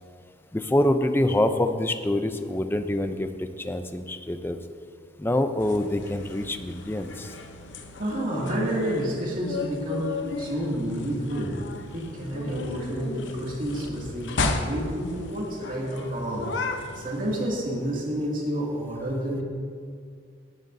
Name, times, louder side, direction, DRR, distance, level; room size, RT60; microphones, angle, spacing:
voice 1, 0.5-4.6 5.2-7.3, left 1 dB, 10° left, 8 dB, 0.5 m, -25 dB
sound 1, 5.6-17.5, left 3 dB, 70° left, 0.8 m, -34 dB
voice 2, 8.0-10.1 10.4-11.5 11.9-16.5 17.0-19.4, right 1 dB, 45° right, -4 dB, 2.3 m, -29 dB
18.5 x 9.4 x 2.7 m, 2.1 s
head